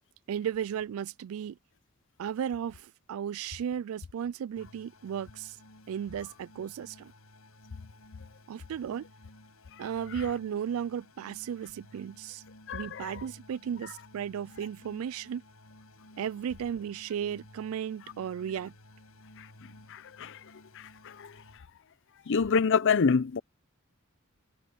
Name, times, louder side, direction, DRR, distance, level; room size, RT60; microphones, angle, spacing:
voice 1, 0.3-1.6 2.2-5.6 5.9-7.1 8.5-9.0 9.8-12.4 12.7-15.4 16.2-18.7, right 8 dB, 70° right, 0.3 m, -35 dB
sound 1, 4.6-21.6, left 1 dB, 85° left, 7.3 m, -55 dB
voice 2, 12.7-13.3 19.4-20.4 20.7-21.4 22.3-23.4, left 5 dB, 60° left, 0.6 m, -28 dB
head